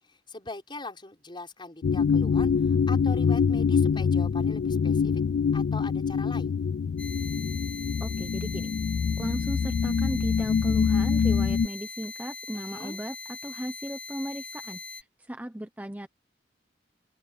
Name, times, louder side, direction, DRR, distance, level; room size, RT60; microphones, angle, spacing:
voice 1, 0.0-5.2 5.5-6.6 12.5-13.0, left 2 dB, 30° left, 5.4 m, -41 dB
sound 1, 1.8-11.7, left 6 dB, 65° left, 0.3 m, -25 dB
sound 2, 7.0-15.0, left 3 dB, 10° left, 2.5 m, -41 dB
voice 2, 8.0-8.7 9.2-16.1, equal, 10° right, 0.9 m, -36 dB
open air
head